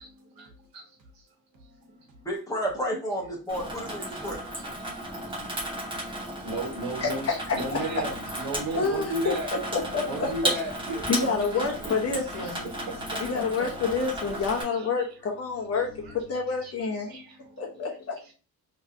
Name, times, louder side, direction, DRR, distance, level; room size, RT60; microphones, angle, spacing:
voice 1, 0.2-1.2 1.5-2.1 4.1-4.2 4.8-5.7 6.4-7.3 7.5-9.5 10.0-11.3 11.6-13.2 13.6-13.7 14.7-15.1 16.0-16.1 16.6-16.7 17.1-17.8, right 1 dB, 80° right, 1.2 m, -36 dB
voice 2, 2.2-4.4, equal, 10° left, 1.3 m, -31 dB
Water tap faucet / Sink (filling or washing), 3.5-14.6, right 1 dB, 15° right, 1.1 m, -34 dB
sound 1, 6.8-17.4, left 6 dB, 75° left, 0.9 m, -51 dB
voice 3, 7.0-8.0 8.8-10.3 11.1-12.7 13.2-17.2 17.6-18.3, left 4 dB, 45° left, 1.0 m, -28 dB
3.3 x 3.1 x 2.6 m
cardioid pair, 170°, 35 cm